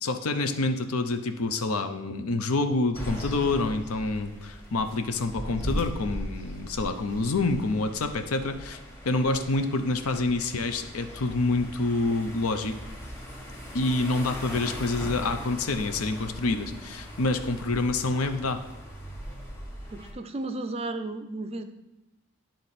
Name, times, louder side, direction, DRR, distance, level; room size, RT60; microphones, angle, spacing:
voice 1, 0.0-12.8 13.7-18.6, left 2 dB, 80° left, 8 dB, 0.7 m, -27 dB
sound 1, 2.9-20.1, equal, 10° left, 1.3 m, -39 dB
voice 2, 19.9-21.6, right 2 dB, 25° right, 9 dB, 0.4 m, -34 dB
11.5 x 3.9 x 4.2 m, 1.0 s
head